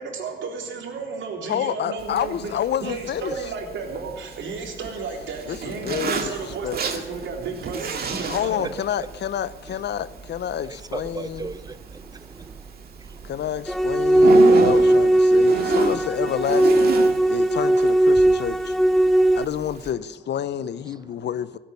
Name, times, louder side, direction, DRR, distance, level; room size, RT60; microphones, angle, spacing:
voice 1, 0.0-2.5 2.8-8.7, right 4 dB, 70° right, 3.8 m, -33 dB
voice 2, 1.5-3.3 5.5-6.8 8.3-11.5 13.2-16.9 17.3-18.7 19.3-21.6, left 10 dB, 60° left, 0.7 m, -29 dB
Zipper (clothing), 2.0-19.9, right 5 dB, 50° right, 2.0 m, -32 dB
voice 3, 10.6-13.3 17.1-17.3 19.0-19.4, right 3 dB, 20° right, 0.9 m, -38 dB
sound 1, 13.7-19.4, right 1 dB, ahead, 0.4 m, -18 dB
16.5 x 8.8 x 9.6 m
cardioid pair, 90°, 20 cm